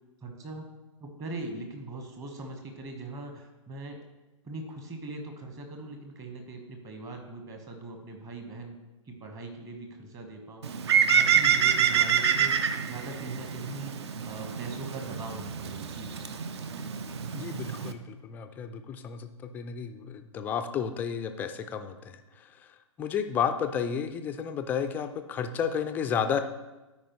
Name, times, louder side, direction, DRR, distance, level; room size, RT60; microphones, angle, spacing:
voice 1, 0.2-0.7 1.0-4.0 4.4-8.8 9.1-10.7 11.2-13.9 14.2-16.1, right 2 dB, 20° right, 3 dB, 1.2 m, -41 dB
Bird, 10.6-17.9, right 8 dB, 55° right, 0.6 m, -27 dB
voice 2, 17.3-22.0 23.0-26.4, left 7 dB, 10° left, 7 dB, 0.3 m, -31 dB
13.0 x 4.9 x 3.0 m, 1.1 s
figure-of-eight pair, 120°, 17 cm